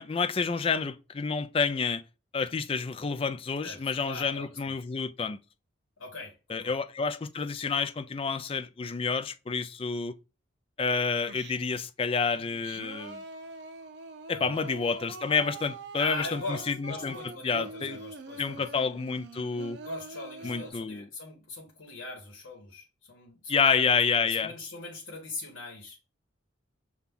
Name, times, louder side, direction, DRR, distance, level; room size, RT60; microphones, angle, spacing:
voice 1, 0.0-2.0 2.3-5.4 6.5-10.1 10.8-13.2 14.3-17.2 17.4-18.0 18.4-19.8 20.4-21.1 23.5-24.5, left 5 dB, 30° left, 0.3 m, -29 dB
voice 2, 3.6-4.7 6.0-6.8 14.3-14.6 16.0-18.6 19.8-23.9 24.1-26.0, left 3 dB, 90° left, 1.1 m, -41 dB
Singing, 11.3-11.9 12.4-20.7, right 3 dB, 55° right, 0.6 m, -44 dB
5.8 x 2.3 x 3.5 m
head